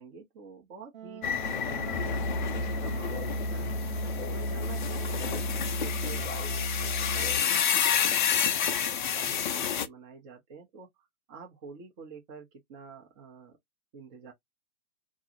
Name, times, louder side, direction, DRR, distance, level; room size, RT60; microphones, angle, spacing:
voice 1, 0.0-1.2 1.6-2.1 2.5-3.7 4.2-8.3 8.8-13.6 13.9-14.3, right 4 dB, 25° right, 0.8 m, -47 dB
Wind instrument woodwind instrument, 0.9-6.5, right 9 dB, 80° right, 1.0 m, -46 dB
sound 1, 1.2-9.9, left 8 dB, 40° left, 0.4 m, -30 dB
Musical instrument, 1.9-7.5, equal, 85° left, 0.6 m, -33 dB
2.6 x 2.3 x 2.9 m
hypercardioid pair, 135°, 40 cm